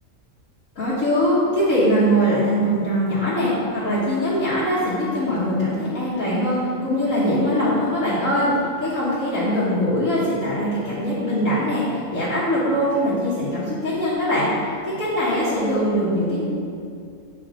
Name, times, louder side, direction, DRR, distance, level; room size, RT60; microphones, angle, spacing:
voice 1, 0.7-8.5 8.8-14.7 15.0-16.5, equal, 70° left, -11 dB, 1.7 m, -22 dB
7.7 x 3.6 x 4.8 m, 2.4 s
omnidirectional pair, 1.5 m